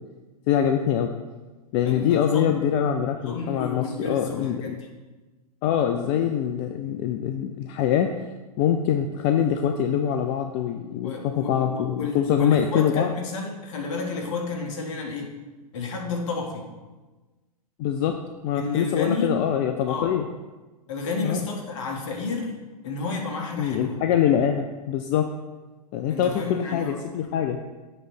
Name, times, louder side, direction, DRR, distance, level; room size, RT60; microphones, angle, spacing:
voice 1, 0.5-1.1 1.7-4.8 5.6-8.1 8.6-13.1 17.8-18.1 18.4-20.3 21.2-21.5 23.6-25.3 25.9-27.6, left 9 dB, 35° left, 6 dB, 0.4 m, -24 dB
voice 2, 1.8-2.6 3.2-4.9 11.0-15.3 15.7-16.7 18.5-19.4 19.9-20.1 20.9-22.5 22.8-24.0 26.1-26.9, left 4 dB, 50° left, 1 dB, 1.6 m, -31 dB
7.6 x 3.2 x 6.0 m, 1.2 s
hypercardioid pair, 110°, 20 cm